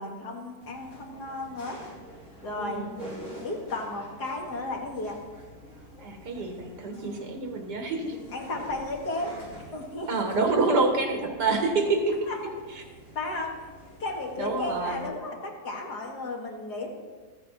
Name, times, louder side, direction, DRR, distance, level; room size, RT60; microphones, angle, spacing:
voice 1, 0.0-1.8 2.4-2.8 3.4-5.2 8.3-9.4 9.7-10.1 12.3-12.4 13.2-13.7 14.0-16.9, left 2 dB, 75° left, 0 dB, 2.3 m, -34 dB
sound 1, 0.6-15.1, equal, 45° left, 4.0 m, -47 dB
voice 2, 2.6-2.9 6.0-8.2 10.1-12.2 12.7-12.8 14.4-15.1, right 3 dB, 80° right, 3 dB, 2.2 m, -27 dB
14.5 x 9.7 x 4.1 m, 1.4 s
omnidirectional pair, 1.8 m